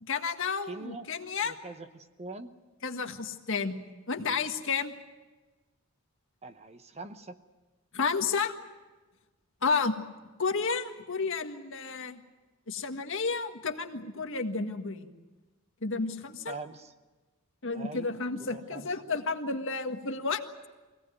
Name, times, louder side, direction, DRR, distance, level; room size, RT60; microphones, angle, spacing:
voice 1, 0.0-1.6 2.8-3.8 4.1-4.9 7.9-8.5 9.6-10.0 10.4-12.2 12.7-15.1 15.8-16.5 17.6-20.4, left 4 dB, 65° left, 5 dB, 1.7 m, -31 dB
voice 2, 0.7-1.1 1.4-2.5 6.4-7.4 16.5-16.9 17.6-18.1 18.4-18.9, right 3 dB, 30° right, 8 dB, 1.0 m, -43 dB
24.0 x 17.5 x 9.4 m, 1.2 s
head